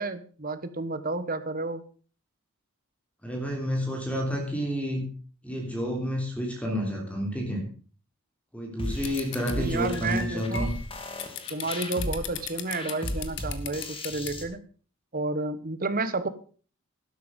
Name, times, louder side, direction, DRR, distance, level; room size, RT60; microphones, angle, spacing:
voice 1, 0.0-1.8 9.5-10.7 11.5-14.6 15.1-16.3, right 3 dB, 45° right, 12 dB, 1.2 m, -31 dB
voice 2, 3.2-5.0 5.4-7.7 8.5-10.7, equal, 5° left, 1 dB, 3.3 m, -30 dB
sound 1, 8.8-14.4, left 1 dB, 25° left, 2.2 m, -35 dB
sound 2, 9.0-9.5 9.9-14.3, left 10 dB, 60° left, 1.6 m, -36 dB
12.5 x 11.5 x 5.3 m, 0.41 s
head